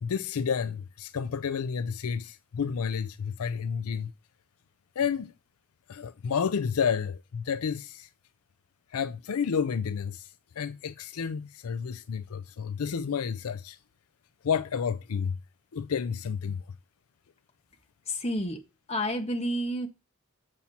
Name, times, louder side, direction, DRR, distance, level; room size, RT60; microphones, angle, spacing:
voice 1, 0.0-4.1 5.0-5.3 5.9-8.1 8.9-13.8 14.4-15.4 15.7-16.6, left 6 dB, 75° left, 0.4 m, -30 dB
voice 2, 18.1-18.6 18.9-19.9, equal, 30° left, 1.4 m, -29 dB
7.3 x 7.2 x 4.2 m
head